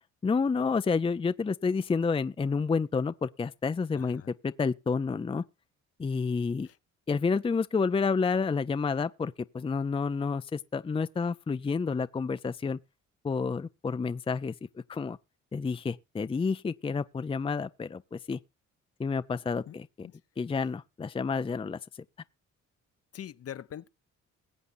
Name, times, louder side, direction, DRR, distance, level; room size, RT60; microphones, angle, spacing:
voice 1, 0.2-5.4 6.0-6.7 7.1-12.8 13.2-15.2 15.5-18.4 19.0-20.1 20.4-21.8, left 5 dB, 20° left, 0.5 m, -29 dB
voice 2, 3.9-4.3 6.6-6.8 19.7-19.8 20.0-20.2 20.6-20.7 23.1-23.9, left 10 dB, 50° left, 0.8 m, -43 dB
21.0 x 8.1 x 2.6 m
cardioid pair, 90°, 30 cm